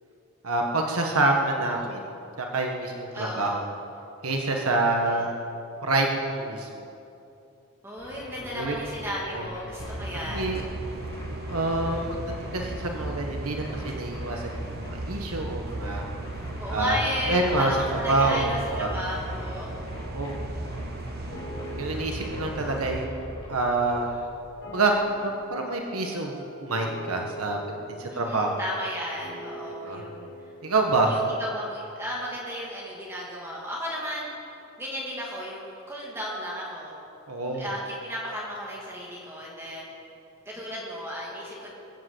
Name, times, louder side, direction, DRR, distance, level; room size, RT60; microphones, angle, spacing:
voice 1, 0.4-2.0 2.4-3.6 4.2-5.3 5.8-6.9 8.5-8.8 9.3-9.5 10.3-10.6 11.5-14.8 15.0-16.0 16.7-16.9 17.3-17.7 18.1-18.9 19.9-20.3 21.8-24.1 24.7-27.6 28.0-28.5 29.8-30.0 30.6-31.1 37.3-37.7, right 2 dB, 85° right, 2 dB, 1.5 m, -27 dB
voice 2, 3.1-3.6 5.0-5.3 7.8-10.5 11.6-12.1 16.6-19.7 28.1-30.3 31.0-34.3 34.8-37.0 37.6-39.9 40.4-41.7, equal, 10° right, -5 dB, 2.6 m, -34 dB
sound 1, 8.0-25.3, equal, 25° left, 3.9 m, -43 dB
sound 2, 9.8-23.0, right 2 dB, 45° right, 1.1 m, -36 dB
sound 3, 21.3-32.4, right 1 dB, 60° left, 4.1 m, -43 dB
22.0 x 7.9 x 8.1 m, 2.7 s
head